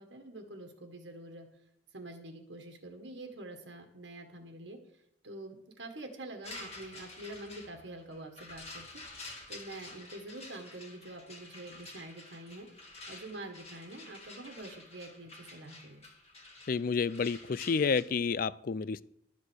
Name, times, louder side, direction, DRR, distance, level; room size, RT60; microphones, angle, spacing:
voice 1, 0.0-1.5 1.9-4.8 5.2-8.9 9.5-12.7 13.1-16.1, right 2 dB, 70° right, 5 dB, 1.7 m, -46 dB
sound 1, 6.4-18.0, left 2 dB, 30° left, 2.1 m, -49 dB
voice 2, 16.7-19.0, left 5 dB, 50° left, 19 dB, 0.4 m, -30 dB
12.0 x 7.6 x 6.3 m, 0.77 s
head